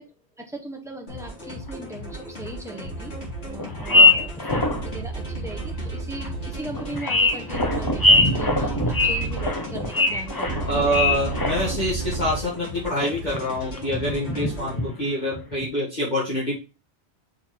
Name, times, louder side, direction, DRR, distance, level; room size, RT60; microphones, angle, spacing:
voice 1, 0.0-3.2 3.5-11.3, right 2 dB, 5° right, 1 dB, 1.1 m, -39 dB
sound 1, 1.1-14.8, left 1 dB, 70° left, 2.6 m, -38 dB
sound 2, 1.7-1.8 2.1-2.2 3.1-3.2 3.6-4.9 5.4-5.5 6.2-6.3 6.7-11.9 12.1-12.4 12.9-13.5 13.8-14.9 15.3-15.6, left 2 dB, 20° left, 0.8 m, -22 dB
sound 3, 2.8-3.5 4.5-6.6 7.5-9.5 10.5-12.4, right 4 dB, 50° right, 0.7 m, -32 dB
voice 2, 10.7-16.5, equal, 40° left, -8 dB, 2.2 m, -26 dB
6.4 x 3.8 x 4.4 m, 0.31 s
omnidirectional pair, 1.1 m